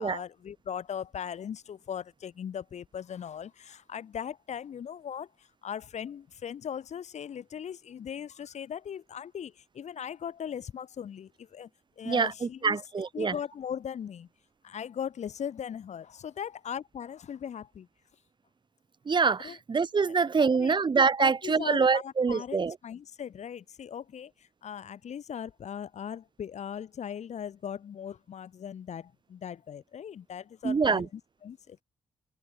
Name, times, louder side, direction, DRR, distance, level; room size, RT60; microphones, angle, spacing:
voice 1, 0.0-11.7 12.0-12.8 13.1-14.3 14.6-17.9 19.4-19.6 20.6-20.7 21.2-31.8, left 8 dB, 65° left, 1.4 m, -39 dB
voice 2, 12.0-13.3 19.1-22.8 30.6-31.1, right 5 dB, 40° right, 1.1 m, -25 dB
open air
cardioid pair, 85°, 12 cm